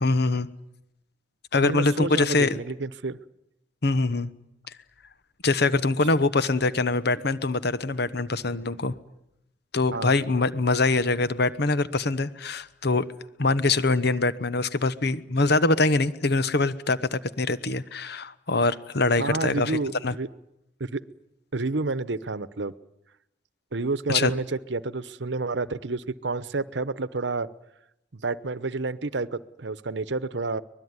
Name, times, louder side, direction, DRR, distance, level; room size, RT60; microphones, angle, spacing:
voice 1, 0.0-0.5 1.5-2.5 3.8-4.3 5.4-8.9 9.7-13.1 13.4-19.8 20.0-20.1 24.1-24.3, left 3 dB, 60° left, 14 dB, 1.1 m, -23 dB
voice 2, 1.6-3.2 9.9-10.3 19.2-20.3 20.8-21.0 21.5-22.7 23.7-27.5 28.1-30.6, right 3 dB, 70° right, 16 dB, 0.9 m, -29 dB
24.5 x 20.5 x 9.7 m, 0.85 s
head